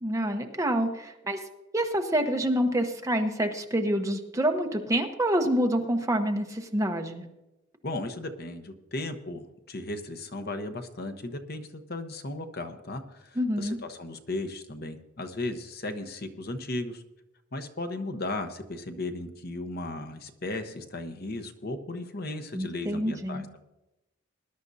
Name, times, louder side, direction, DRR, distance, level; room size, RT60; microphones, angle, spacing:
voice 1, 0.0-1.4 1.7-7.2 13.4-13.8 22.5-23.5, equal, 15° right, 4 dB, 0.9 m, -27 dB
voice 2, 7.8-17.0 17.5-23.6, left 2 dB, 50° left, 7 dB, 1.0 m, -36 dB
20.0 x 11.5 x 2.7 m, 0.96 s
head